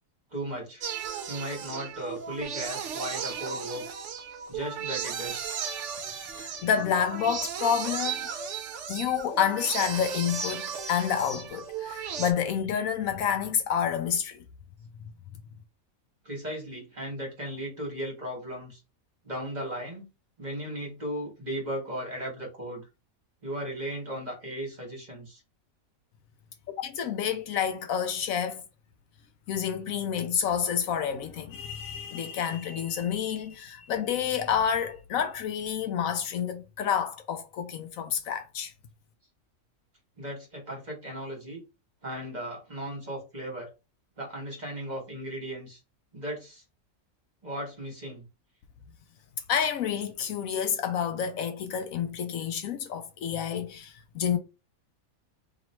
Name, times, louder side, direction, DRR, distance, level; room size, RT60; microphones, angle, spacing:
voice 1, 0.3-0.8 1.3-4.0 4.5-5.5 16.2-18.8 19.2-20.1 20.4-22.8 23.4-25.4 40.2-41.6 42.0-43.7 44.2-45.8 46.1-46.6 47.4-48.2, right 1 dB, 30° right, 1.6 m, -36 dB
sound 1, 0.8-12.3, right 7 dB, 60° right, 0.9 m, -35 dB
voice 2, 6.3-8.3 8.9-14.4 26.8-28.6 29.5-38.7 49.5-54.4, left 8 dB, 75° left, 0.9 m, -29 dB
3.0 x 3.0 x 4.2 m
omnidirectional pair, 1.5 m